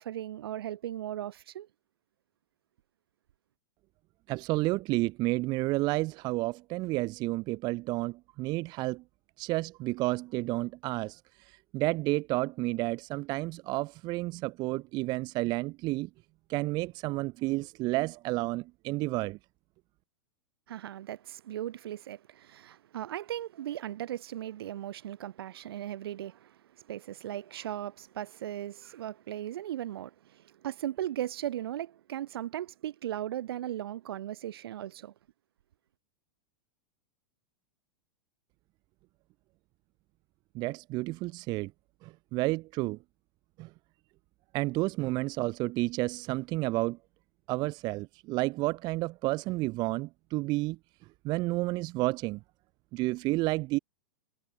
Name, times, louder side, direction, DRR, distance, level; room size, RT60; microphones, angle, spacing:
voice 1, 0.0-1.7 20.7-35.1, right 12 dB, 80° right, 2.1 m, -37 dB
voice 2, 4.3-9.0 9.4-11.2 11.7-16.1 16.5-19.4 40.5-41.7 42.0-43.0 43.6-43.7 44.5-47.0 47.5-50.8 51.2-52.4 52.9-53.8, right 21 dB, 35° right, 0.4 m, -31 dB
hypercardioid pair, 130°, 13 cm